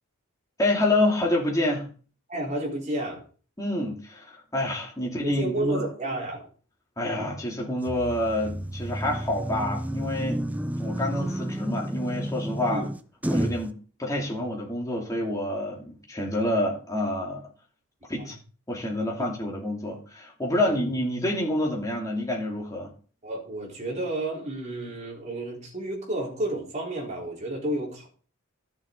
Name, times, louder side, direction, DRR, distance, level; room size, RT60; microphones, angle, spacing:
voice 1, 0.6-1.9 3.6-5.8 7.0-10.5 10.8-12.9 13.3-17.4 18.1-18.4 18.7-22.9, left 1 dB, 15° left, 2.7 m, -27 dB
voice 2, 2.3-3.2 5.2-6.5 12.7-12.9 18.2-18.4 20.6-20.8 23.2-28.1, right 1 dB, 35° right, 3.9 m, -31 dB
sound 1, 7.9-13.7, right 1 dB, 5° right, 0.5 m, -31 dB
13.5 x 7.1 x 3.8 m
head